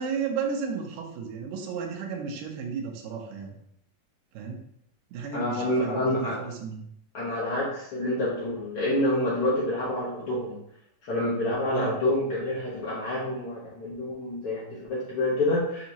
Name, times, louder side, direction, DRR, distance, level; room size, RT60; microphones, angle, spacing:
voice 1, 0.0-3.5 4.3-4.6 5.1-6.8 11.7-11.9, right 6 dB, 80° right, 2 dB, 2.3 m, -33 dB
voice 2, 5.3-6.4 7.1-10.6 11.0-15.9, left 1 dB, 70° left, -8 dB, 1.3 m, -28 dB
6.7 x 2.7 x 2.8 m, 0.74 s
omnidirectional pair, 3.9 m